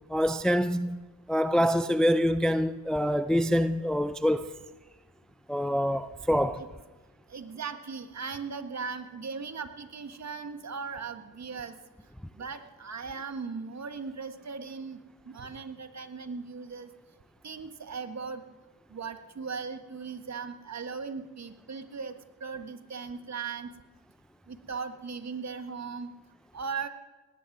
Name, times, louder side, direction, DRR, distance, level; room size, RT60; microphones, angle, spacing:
voice 1, 0.1-1.0 1.3-4.5 5.5-6.6, equal, ahead, 0.5 m, -25 dB
voice 2, 7.3-11.8 12.3-15.0 15.2-16.9 17.4-18.4 18.9-22.1 22.4-23.7 24.5-26.1 26.5-26.9, right 5 dB, 45° right, 1.5 m, -38 dB
19.0 x 10.5 x 6.1 m
supercardioid pair, 55°, 38 cm